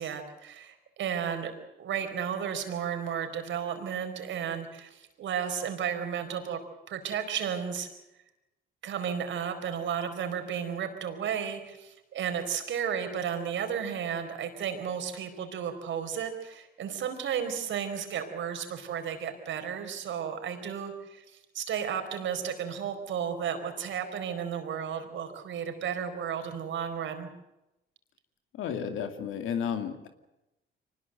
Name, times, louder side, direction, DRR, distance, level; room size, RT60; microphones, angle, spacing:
voice 1, 0.0-1.5 1.8-6.6 6.9-7.9 8.8-27.3, right 8 dB, 70° right, 7 dB, 4.6 m, -33 dB
voice 2, 28.5-30.1, left 7 dB, 85° left, 7 dB, 2.4 m, -32 dB
24.5 x 20.0 x 7.8 m, 0.92 s
cardioid pair, 90°, 20 cm